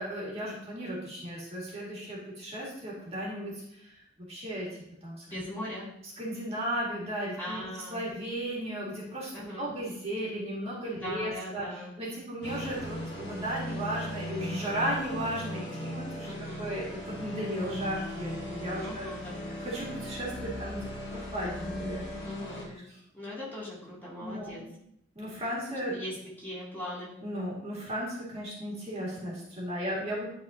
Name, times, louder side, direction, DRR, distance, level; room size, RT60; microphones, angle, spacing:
voice 1, 0.0-4.7 5.0-5.4 6.2-7.6 7.9-16.3 16.6-19.1 19.6-22.3 22.7-23.0 24.2-24.7 25.2-26.0 27.2-30.3, equal, 30° right, -6 dB, 2.0 m, -35 dB
voice 2, 5.3-5.9 7.4-8.0 9.3-9.7 10.9-11.9 16.2-16.7 18.7-19.4 22.2-22.8 23.1-24.6 25.9-27.1, equal, 10° left, -9 dB, 2.5 m, -40 dB
sound 1, 12.4-22.7, equal, 55° left, 1.8 m, -38 dB
11.0 x 4.1 x 2.8 m, 0.75 s
head